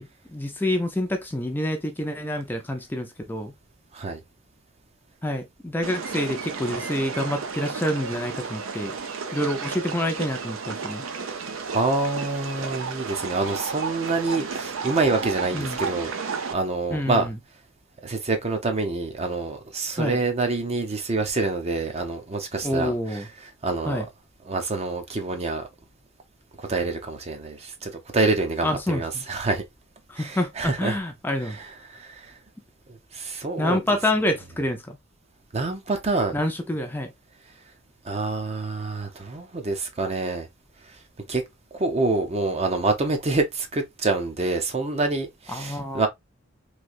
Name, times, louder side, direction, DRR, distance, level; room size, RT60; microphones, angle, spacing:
voice 1, 0.0-3.5 5.2-9.0 9.3-11.1 15.5-15.8 16.9-17.4 20.0-20.2 22.6-23.3 23.8-24.1 28.6-29.2 30.1-31.6 33.6-35.0 36.3-37.1 45.5-46.1, left 1 dB, 10° left, 0.4 m, -27 dB
sound 1, 5.8-16.5, right 5 dB, 75° right, 0.6 m, -32 dB
voice 2, 11.7-16.1 16.5-17.3 18.0-22.9 23.6-24.0 24.5-25.7 26.7-29.6 30.2-31.0 31.9-32.3 33.1-33.8 35.5-36.4 38.0-40.5 41.3-41.4 41.7-46.1, right 3 dB, 30° right, 0.6 m, -26 dB
3.1 x 2.8 x 2.4 m
head